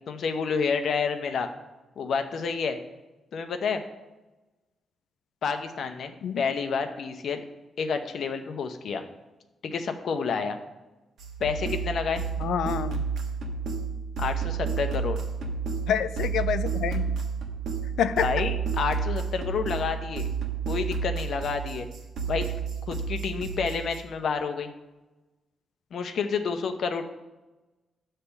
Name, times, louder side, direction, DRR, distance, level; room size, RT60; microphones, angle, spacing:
voice 1, 0.1-1.5 2.0-2.8 3.3-3.8 5.4-7.4 7.8-9.0 9.6-10.6 11.4-12.2 14.2-15.2 18.2-20.3 20.7-21.9 22.3-22.5 22.9-24.7 25.9-27.0, left 5 dB, 60° left, 7 dB, 0.7 m, -29 dB
sound 1, 11.2-24.0, right 6 dB, 80° right, 1.1 m, -31 dB
voice 2, 12.4-13.0 15.9-17.2 18.0-18.3, left 8 dB, 90° left, 13 dB, 0.4 m, -27 dB
9.6 x 3.4 x 6.9 m, 1.1 s
cardioid pair, 140°, 0 cm